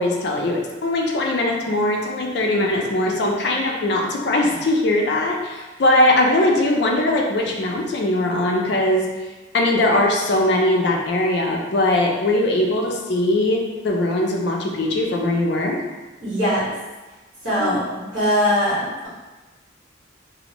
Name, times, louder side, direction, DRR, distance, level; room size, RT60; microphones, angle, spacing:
voice 1, 0.0-9.1 9.5-15.8 17.6-17.8, left 1 dB, 55° left, 0 dB, 0.4 m, -20 dB
voice 2, 16.2-16.7 17.4-17.8 18.1-19.1, equal, 70° right, -10 dB, 1.4 m, -21 dB
2.5 x 2.0 x 2.9 m, 1.2 s
head